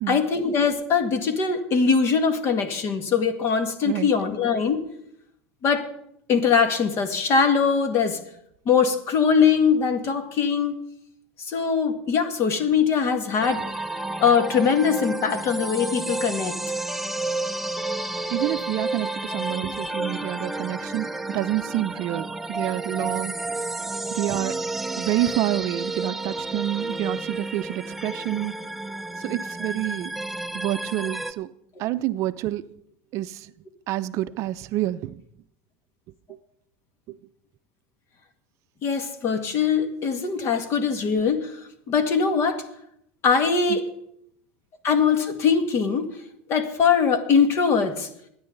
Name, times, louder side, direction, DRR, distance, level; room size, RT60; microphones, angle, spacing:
voice 1, 0.1-4.8 5.6-5.9 6.3-8.2 8.7-10.7 11.4-13.6 14.2-16.5 38.8-41.5 41.9-42.6 43.2-43.8 44.8-46.1 46.5-48.1, left 6 dB, 45° left, 8 dB, 2.0 m, -22 dB
sound 1, 13.4-31.3, right 2 dB, 5° right, 0.6 m, -31 dB
voice 2, 18.3-23.3 24.1-24.5 25.0-28.5 29.2-30.1 30.5-31.5 31.8-32.6 33.1-33.4 33.9-35.2 43.7-43.8, right 15 dB, 55° right, 13 dB, 0.5 m, -28 dB
22.5 x 9.7 x 3.9 m, 0.74 s
supercardioid pair, 115°, 6 cm